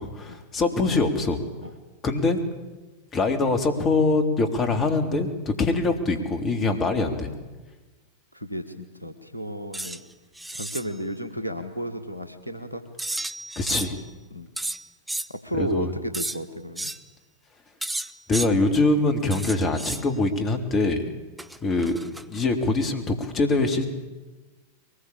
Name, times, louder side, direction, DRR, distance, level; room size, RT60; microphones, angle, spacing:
voice 1, 0.0-1.4 2.0-2.4 3.1-7.3 13.5-14.0 15.6-15.9 18.3-21.0 21.6-22.0 22.3-23.9, left 3 dB, 25° left, 7 dB, 3.3 m, -23 dB
voice 2, 8.3-10.0 10.5-12.8 14.3-14.5 15.3-16.9 21.0-21.2, right 1 dB, 90° left, 9 dB, 1.8 m, -33 dB
sound 1, 9.7-10.0 10.4-10.9 13.0-14.0 14.6-15.3 16.1-16.4 16.8-17.0 17.8-18.5 19.3-20.0 21.4-22.4, right 1 dB, 5° right, 1.0 m, -32 dB
23.0 x 20.5 x 8.7 m, 1.2 s
figure-of-eight pair, 90°, 0 cm